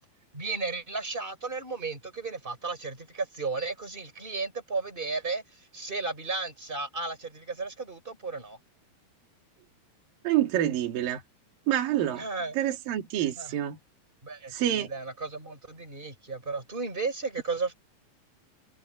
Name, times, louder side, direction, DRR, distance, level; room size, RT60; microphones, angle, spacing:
voice 1, 0.3-8.6 12.2-12.7 13.2-13.5 14.2-17.7, right 4 dB, 15° right, 4.5 m, -34 dB
voice 2, 10.2-11.2 11.7-12.2 12.5-13.8 14.5-14.9, right 12 dB, 70° right, 3.8 m, -27 dB
omnidirectional pair, 4.2 m